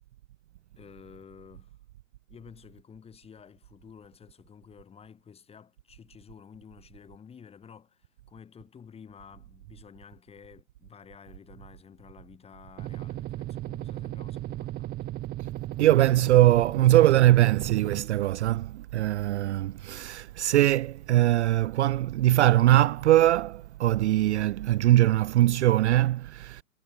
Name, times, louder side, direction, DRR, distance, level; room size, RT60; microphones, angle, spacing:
voice 1, 0.8-1.8 2.3-15.0, left 7 dB, 15° left, 4.6 m, -51 dB
sound 1, 12.8-18.0, right 15 dB, 20° right, 1.5 m, -35 dB
voice 2, 15.8-26.6, right 14 dB, 55° right, 0.6 m, -22 dB
hypercardioid pair, 130°, 42 cm